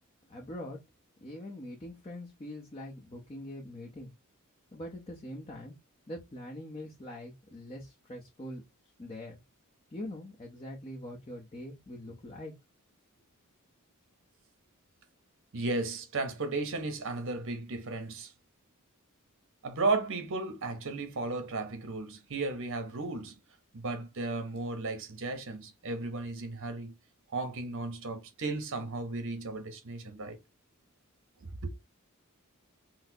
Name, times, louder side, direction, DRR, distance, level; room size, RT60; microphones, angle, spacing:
voice 1, 0.3-0.8 1.2-4.1 4.7-5.8 6.1-8.6 9.0-9.4 9.9-12.5, left 1 dB, 25° left, 0.7 m, -43 dB
voice 2, 15.5-18.3 19.6-23.4 23.7-26.9 27.3-30.4 31.4-31.7, right 3 dB, 60° right, 0.9 m, -34 dB
4.1 x 2.1 x 2.7 m
head